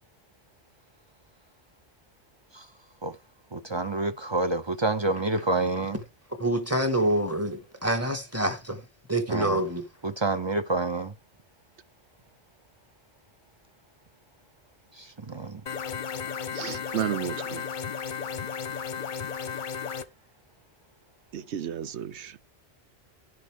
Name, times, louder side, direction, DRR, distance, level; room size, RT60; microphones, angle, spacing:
voice 1, 3.5-6.0 9.3-9.6 10.0-11.1 14.9-15.6, right 2 dB, 30° right, 0.6 m, -28 dB
voice 2, 6.4-8.8 9.1-9.8, right 1 dB, 15° right, 1.6 m, -26 dB
sound 1, 15.7-20.0, left 6 dB, 50° left, 0.8 m, -34 dB
voice 3, 16.5-17.6 21.3-22.5, right 10 dB, 85° right, 1.0 m, -33 dB
11.0 x 10.5 x 3.5 m
omnidirectional pair, 1.1 m